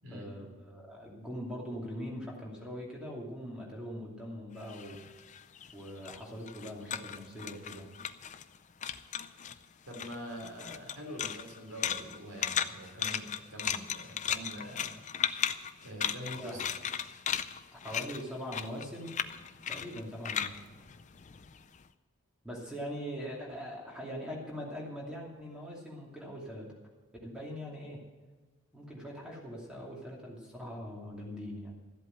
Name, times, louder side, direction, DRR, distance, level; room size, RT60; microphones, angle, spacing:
voice 1, 0.1-5.0 5.7-7.9 16.3-16.7 17.8-19.1 19.7-20.5 22.4-26.7 27.2-28.0 28.7-31.7, equal, 5° right, -3 dB, 2.6 m, -42 dB
sound 1, 4.6-8.6 8.8-9.6 9.9-21.7, left 8 dB, 35° left, 0.4 m, -36 dB
voice 2, 9.9-15.0 15.8-16.6, equal, 80° right, 1 dB, 3.4 m, -44 dB
13.5 x 8.2 x 7.8 m, 1.3 s
head